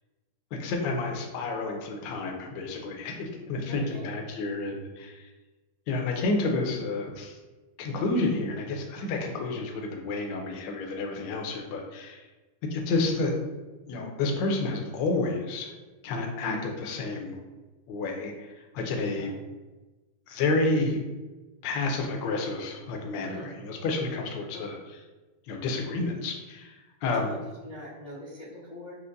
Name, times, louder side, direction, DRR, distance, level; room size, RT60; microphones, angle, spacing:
voice 1, 0.5-5.3 5.9-7.4 7.8-12.2 12.7-13.3 13.9-15.7 16.0-17.3 17.9-19.3 20.3-21.0 21.6-24.8 25.5-27.3, left 3 dB, 75° left, 2 dB, 1.1 m, -30 dB
voice 2, 3.7-4.1 9.0-9.2 19.2-19.4 23.2-23.5 24.5-24.8 27.1-29.0, left 1 dB, 45° left, -10 dB, 0.4 m, -43 dB
4.5 x 2.1 x 2.6 m, 1.2 s
omnidirectional pair, 2.3 m